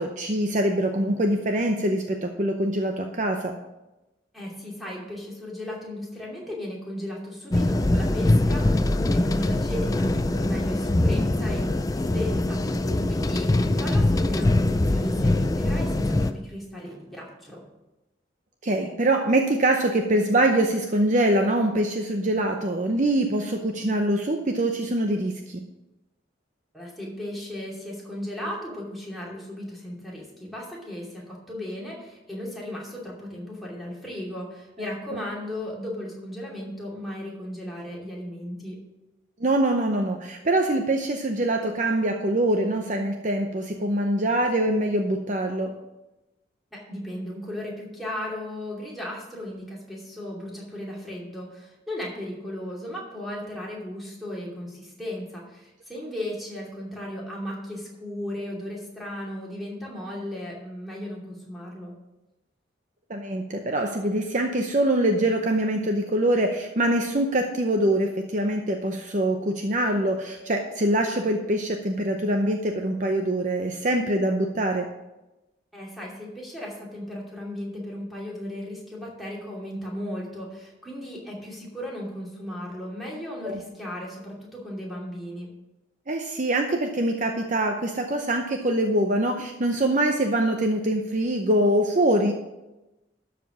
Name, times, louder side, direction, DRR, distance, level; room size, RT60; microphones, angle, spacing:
voice 1, 0.0-3.6 18.6-25.6 34.8-35.2 39.4-45.7 63.1-74.9 83.4-83.6 86.1-92.3, right 1 dB, 40° right, 4 dB, 0.7 m, -24 dB
voice 2, 4.3-17.6 26.7-38.8 46.7-61.9 75.7-85.5, left 1 dB, ahead, -5 dB, 2.6 m, -36 dB
sound 1, 7.5-16.3, left 1 dB, 20° left, 0.4 m, -23 dB
12.5 x 5.1 x 6.1 m, 0.98 s
head